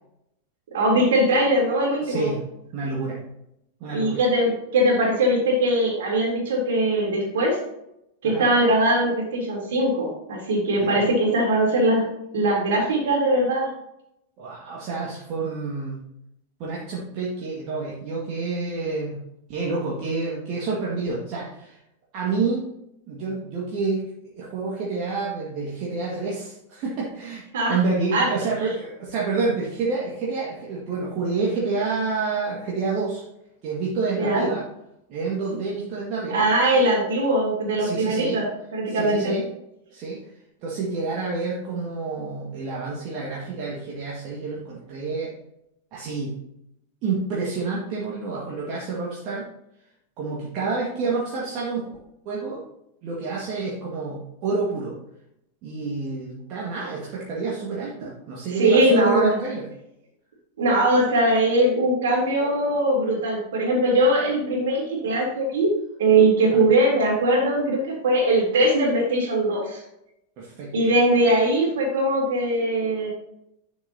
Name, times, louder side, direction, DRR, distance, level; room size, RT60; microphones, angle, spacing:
voice 1, 0.7-2.3 3.9-7.6 8.2-12.1 12.3-13.7 27.5-27.7 28.1-28.3 34.2-34.4 36.3-38.5 38.7-39.3 58.6-59.3 60.6-65.7 66.0-69.8 70.7-73.1, right 1 dB, 60° right, -2 dB, 3.3 m, -21 dB
voice 2, 2.0-2.4 2.7-3.2 3.8-4.2 8.2-8.5 10.8-11.0 14.4-16.0 16.6-19.2 19.5-21.8 22.1-22.7 23.1-24.1 24.4-33.2 33.6-34.6 35.1-36.4 37.8-38.4 38.9-39.5 39.9-40.2 40.6-45.3 45.9-46.3 47.0-49.5 50.2-51.9 52.3-52.6 53.0-55.0 55.6-59.6 70.4-70.7, right 4 dB, 40° right, -5 dB, 1.8 m, -28 dB
11.0 x 6.6 x 2.9 m, 0.82 s
figure-of-eight pair, 90°, 0 cm